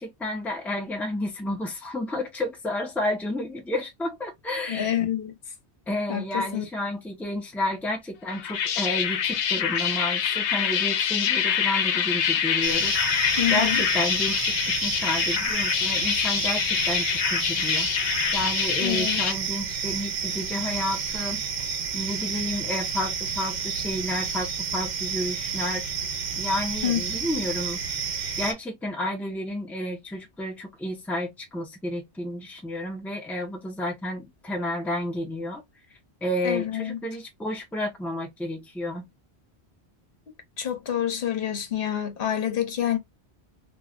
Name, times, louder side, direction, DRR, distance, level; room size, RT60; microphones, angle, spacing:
voice 1, 0.0-5.0 5.9-13.0 13.5-25.9 26.4-27.8 28.4-35.6 36.2-39.0, left 1 dB, ahead, 0.7 m, -31 dB
voice 2, 4.7-5.3 6.1-6.6 9.8-9.9 13.4-13.8 18.8-19.2 26.8-27.0 36.4-37.0 40.6-43.0, left 10 dB, 55° left, 0.9 m, -27 dB
sound 1, 8.3-19.3, left 8 dB, 85° left, 0.9 m, -25 dB
sound 2, 12.6-28.5, right 6 dB, 50° right, 0.6 m, -30 dB
3.1 x 2.3 x 2.3 m
omnidirectional pair, 1.1 m